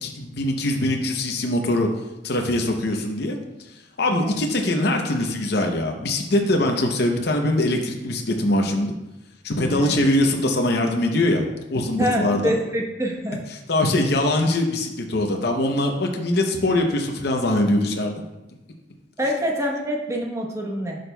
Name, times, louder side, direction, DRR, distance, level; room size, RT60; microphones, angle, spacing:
voice 1, 0.0-1.9 2.2-3.4 4.0-8.9 9.4-11.4 11.7-12.6 13.7-18.1, left 1 dB, 55° left, 2 dB, 0.7 m, -22 dB
voice 2, 4.1-4.5 9.7-10.0 11.9-13.4 19.2-21.0, equal, 15° right, 0 dB, 1.0 m, -26 dB
11.0 x 6.3 x 2.2 m, 0.99 s
head